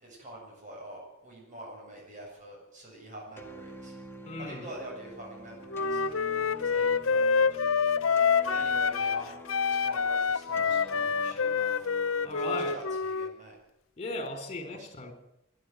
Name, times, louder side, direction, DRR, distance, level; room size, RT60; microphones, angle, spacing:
voice 1, 0.0-3.9 4.4-6.0 6.5-7.9 8.4-11.9 12.2-13.5 14.8-14.9, right 1 dB, 40° right, -2 dB, 7.8 m, -45 dB
sound 1, 3.4-13.0, left 1 dB, 10° left, 1.8 m, -47 dB
voice 2, 4.2-4.7 12.2-12.7 14.0-15.1, left 2 dB, 30° left, 7 dB, 4.2 m, -37 dB
Wind instrument woodwind instrument, 5.7-9.2 9.5-13.4, left 5 dB, 80° left, 0.8 m, -27 dB
25.0 x 11.5 x 9.3 m, 0.84 s
head